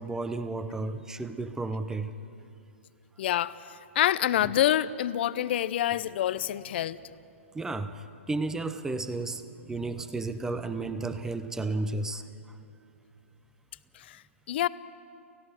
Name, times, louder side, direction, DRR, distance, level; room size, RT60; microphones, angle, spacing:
voice 1, 0.0-2.1 4.4-4.5 5.3-5.5 7.5-12.2, right 3 dB, 5° right, 12 dB, 0.9 m, -33 dB
voice 2, 3.2-7.0 13.9-14.2 14.5-14.7, left 12 dB, 55° left, 17 dB, 0.7 m, -27 dB
29.0 x 16.0 x 6.4 m, 2.6 s
hypercardioid pair, 125°, 7 cm